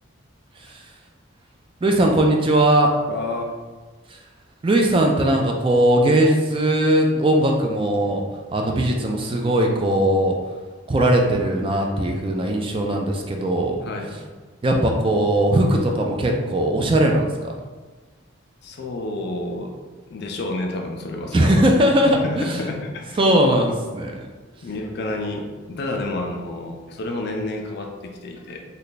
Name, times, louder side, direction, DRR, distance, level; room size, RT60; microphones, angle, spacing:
voice 1, 0.6-0.9 1.8-2.9 4.1-4.2 4.6-8.2 8.5-10.4 10.9-13.8 14.1-14.2 14.6-17.5 21.3-22.7 23.2-24.3, right 1 dB, 25° right, 1 dB, 0.3 m, -19 dB
voice 2, 3.1-3.6 13.8-14.1 18.6-19.8 20.1-21.5 22.1-23.2 24.6-28.6, left 2 dB, 55° left, 3 dB, 0.4 m, -30 dB
3.2 x 2.2 x 3.9 m, 1.3 s
head